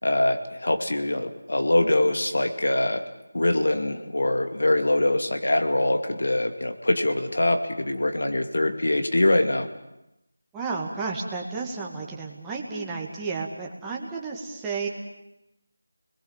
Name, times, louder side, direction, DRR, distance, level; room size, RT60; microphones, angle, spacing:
voice 1, 0.0-3.0 3.3-9.7, left 1 dB, 75° left, 6 dB, 2.5 m, -23 dB
voice 2, 10.5-14.9, right 4 dB, 5° right, -3 dB, 2.1 m, -32 dB
30.0 x 21.0 x 7.4 m, 0.90 s
figure-of-eight pair, 170°, 0 cm